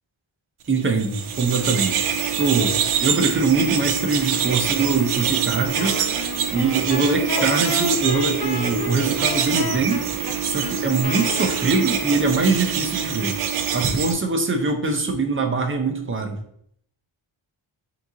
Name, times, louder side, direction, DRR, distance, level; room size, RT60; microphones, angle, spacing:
voice 1, 0.7-2.7 3.0-6.0 6.5-10.0 10.4-13.4 13.7-16.4, right 3 dB, 25° right, 4 dB, 0.6 m, -23 dB
sound 1, 0.9-14.1, right 8 dB, 80° right, 0.5 m, -25 dB
Wind instrument woodwind instrument, 5.8-12.3, left 5 dB, 55° left, 0.6 m, -32 dB
3.5 x 2.9 x 3.8 m, 0.68 s
wide cardioid pair, 80°, 49 cm